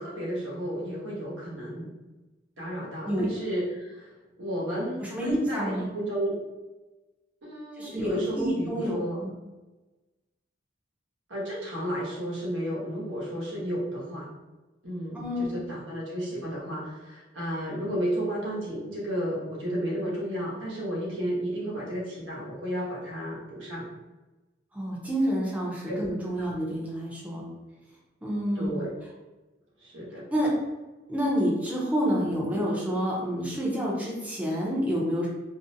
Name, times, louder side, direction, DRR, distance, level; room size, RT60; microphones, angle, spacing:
voice 1, 0.0-1.9 2.6-6.4 7.4-9.2 11.3-14.3 14.8-23.9 25.9-26.0 26.4-26.5 28.6-28.9 29.8-30.2, equal, 85° right, -5 dB, 0.9 m, -32 dB
voice 2, 5.0-5.9 7.8-9.3 15.1-15.6 24.7-27.4 28.2-28.8 30.3-30.5 31.1-35.3, equal, 10° right, -5 dB, 0.5 m, -28 dB
2.5 x 2.0 x 2.6 m, 1.1 s
head